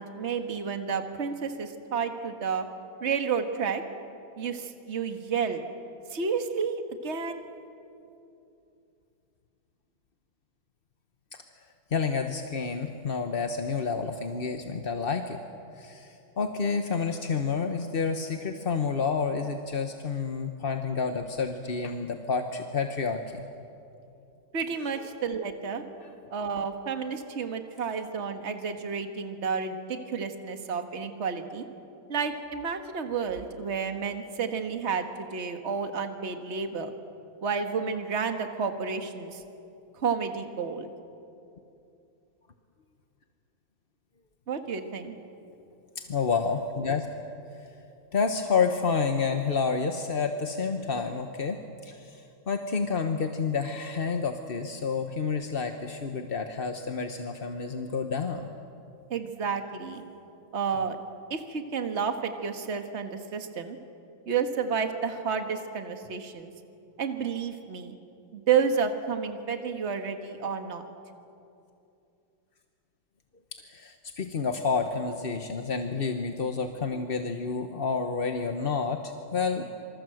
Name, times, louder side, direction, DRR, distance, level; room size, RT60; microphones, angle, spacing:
voice 1, 0.0-2.7 3.0-3.8 4.4-5.6 6.1-7.4 24.5-25.8 26.3-31.6 32.1-36.9 37.4-39.4 40.0-40.9 44.5-45.2 59.1-60.0 60.5-61.0 61.3-63.8 64.2-66.5 67.0-67.9 68.3-70.8, right 6 dB, 35° right, 6 dB, 1.7 m, -31 dB
voice 2, 11.9-15.4 15.8-23.4 46.0-47.1 47.6-47.7 48.1-58.5 73.5-79.6, left 5 dB, 35° left, 6 dB, 1.0 m, -29 dB
27.5 x 25.5 x 7.8 m, 2.7 s
omnidirectional pair, 2.2 m